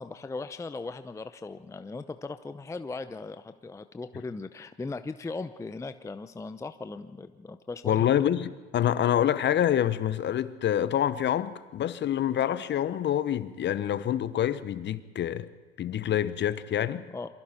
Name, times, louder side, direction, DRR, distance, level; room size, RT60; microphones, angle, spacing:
voice 1, 0.0-8.0 17.1-17.3, left 3 dB, 10° left, 0.7 m, -38 dB
voice 2, 7.8-15.5 15.8-17.0, left 10 dB, 35° left, 1.1 m, -26 dB
27.5 x 24.0 x 4.4 m
hypercardioid pair, 85°, 32 cm